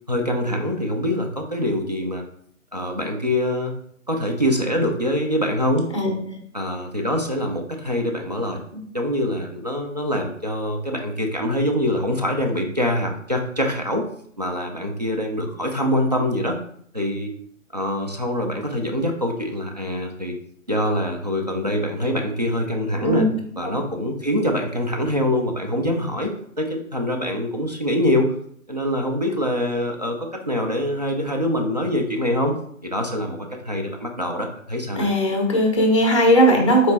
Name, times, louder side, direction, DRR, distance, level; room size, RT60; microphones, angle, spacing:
voice 1, 0.1-2.2 2.7-3.7 4.1-5.9 6.5-8.6 8.9-14.0 14.4-16.6 16.9-17.3 17.7-20.4 20.7-23.3 23.6-28.3 28.7-32.5 32.8-35.1, left 1 dB, 35° right, 2 dB, 0.4 m, -24 dB
voice 2, 35.0-36.9, equal, 20° left, 1 dB, 0.5 m, -18 dB
4.0 x 3.1 x 3.3 m, 0.66 s
hypercardioid pair, 160°, 41 cm